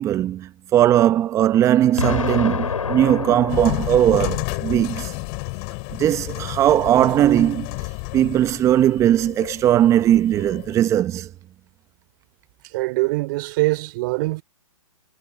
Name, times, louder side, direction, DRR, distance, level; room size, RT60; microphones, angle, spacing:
voice 1, 0.0-5.2 6.0-7.7 8.1-11.3, right 12 dB, 15° right, 0.8 m, -19 dB
Explosion, 2.0-4.9, left 6 dB, 75° left, 5.6 m, -28 dB
sound 1, 3.5-10.7, left 40 dB or more, 30° left, 6.9 m, -31 dB
voice 2, 12.7-14.4, right 22 dB, 35° right, 3.1 m, -23 dB
hypercardioid pair, 140°, 18 cm